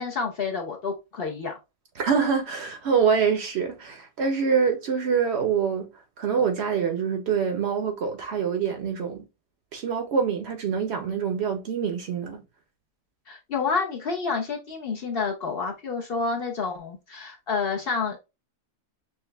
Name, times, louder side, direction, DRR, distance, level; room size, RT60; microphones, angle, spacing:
voice 1, 0.0-1.5 13.3-18.2, left 5 dB, 55° left, 0.8 m, -29 dB
voice 2, 2.0-5.9 6.2-9.2 9.7-12.4, right 6 dB, 60° right, 0.8 m, -25 dB
5.8 x 2.1 x 2.2 m
omnidirectional pair, 1.4 m